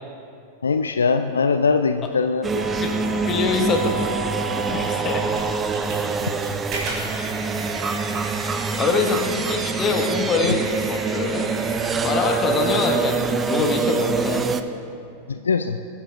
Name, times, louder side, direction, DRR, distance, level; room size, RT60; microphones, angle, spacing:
voice 1, 0.6-2.6 6.2-6.3 15.3-15.8, left 5 dB, 70° left, 8 dB, 0.3 m, -21 dB
sound 1, 2.4-14.6, right 4 dB, 20° right, 0.5 m, -25 dB
Wind instrument woodwind instrument, 2.5-5.9, right 4 dB, 5° right, 2.3 m, -32 dB
voice 2, 3.2-4.1 4.6-5.3 8.1-8.3 8.7-11.5 12.0-14.5, left 4 dB, 25° left, 3 dB, 1.4 m, -24 dB
sound 2, 5.3-11.9, right 2 dB, 40° right, 3.1 m, -36 dB
22.5 x 9.3 x 2.5 m, 2.6 s
figure-of-eight pair, 90°, 0 cm